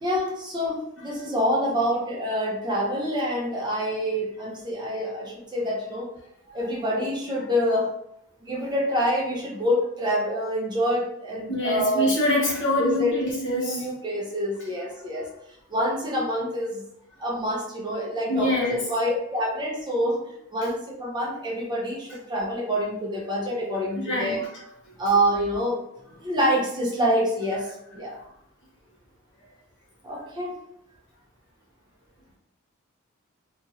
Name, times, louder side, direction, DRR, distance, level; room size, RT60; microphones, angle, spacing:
voice 1, 0.0-6.1 6.5-7.9 8.4-12.1 12.8-13.1 13.6-15.3 15.7-16.8 17.2-24.4 25.0-25.8 26.2-28.2 30.0-30.5, equal, 20° right, -4 dB, 0.7 m, -26 dB
voice 2, 11.5-13.9 18.3-18.8 24.0-24.6, left 1 dB, 55° left, -3 dB, 0.9 m, -25 dB
2.9 x 2.5 x 2.8 m, 0.78 s
head